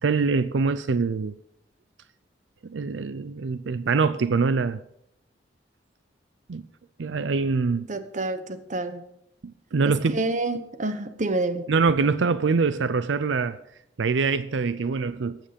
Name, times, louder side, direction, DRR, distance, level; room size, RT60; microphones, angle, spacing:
voice 1, 0.0-1.3 2.6-4.8 6.5-6.6 7.0-7.9 9.4-10.2 11.7-13.6 14.0-15.4, right 4 dB, 85° right, 0.5 m, -24 dB
voice 2, 7.9-9.0 9.8-11.7, right 2 dB, 45° right, 1.0 m, -28 dB
14.5 x 9.1 x 5.2 m
head